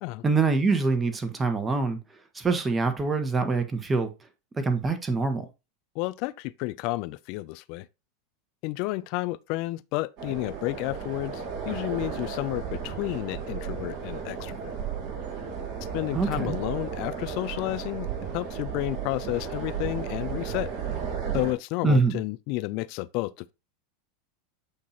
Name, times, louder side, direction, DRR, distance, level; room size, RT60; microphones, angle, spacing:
voice 1, 0.2-2.0 2.3-4.1 4.6-5.5 16.1-16.6 21.8-22.2, right 3 dB, 20° right, 1.2 m, -24 dB
voice 2, 6.0-7.9 8.6-14.7 15.9-18.1 18.3-20.7 21.3-23.5, left 20 dB, 55° left, 0.3 m, -31 dB
sound 1, 10.2-21.5, right 7 dB, 60° right, 3.3 m, -34 dB
8.5 x 2.9 x 4.1 m
hypercardioid pair, 105°, 0 cm